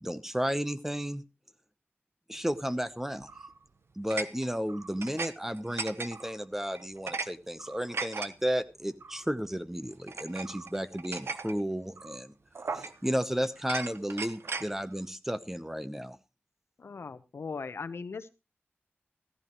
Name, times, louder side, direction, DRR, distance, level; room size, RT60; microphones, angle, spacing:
voice 1, 0.0-1.2 2.3-3.3 4.0-12.3 12.7-16.2, equal, 5° right, 12 dB, 0.9 m, -33 dB
sound 1, 3.2-3.6 4.1-5.3 5.6-6.3 6.7-7.3 7.6-8.3 9.0-9.2 10.1-11.6 12.0-12.2 12.6-13.2 13.6-14.7, right 4 dB, 70° right, 1.0 m, -37 dB
voice 2, 16.8-18.3, left 4 dB, 75° left, 13 dB, 0.9 m, -39 dB
15.0 x 14.5 x 3.1 m, 0.28 s
wide cardioid pair, 100°, 4 cm